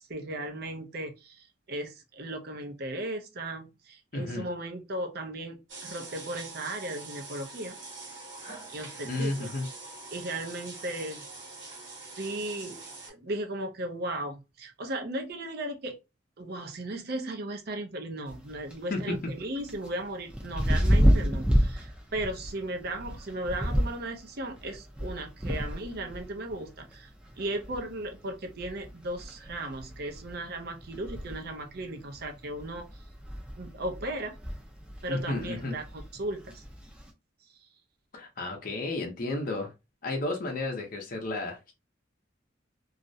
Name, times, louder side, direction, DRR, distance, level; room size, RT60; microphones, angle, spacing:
voice 1, 0.1-7.8 8.7-9.5 10.1-11.2 12.1-15.9 16.4-27.1 27.4-32.9 33.6-34.4 35.0-36.6 39.3-39.4, right 1 dB, 55° right, 0.5 m, -36 dB
voice 2, 4.1-4.4 9.0-9.7 18.9-19.2 35.1-35.8 38.1-39.7 40.0-41.7, left 2 dB, 50° left, 0.6 m, -32 dB
sound 1, 5.7-13.1, right 3 dB, 80° right, 1.0 m, -44 dB
sound 2, 18.3-37.1, equal, 5° right, 0.5 m, -31 dB
2.4 x 2.0 x 2.6 m
head